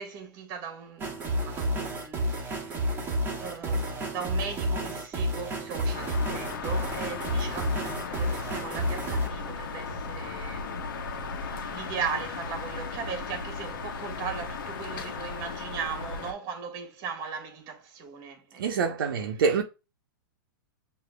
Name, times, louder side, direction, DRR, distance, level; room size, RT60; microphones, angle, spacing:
voice 1, 0.0-19.0, right 6 dB, 35° right, 1.4 m, -38 dB
sound 1, 1.0-9.3, equal, 15° right, 1.5 m, -30 dB
sound 2, 5.9-16.3, left 4 dB, 65° left, 1.0 m, -36 dB
voice 2, 18.6-19.6, right 5 dB, 75° right, 0.9 m, -25 dB
6.6 x 2.8 x 2.2 m
hypercardioid pair, 135°, 11 cm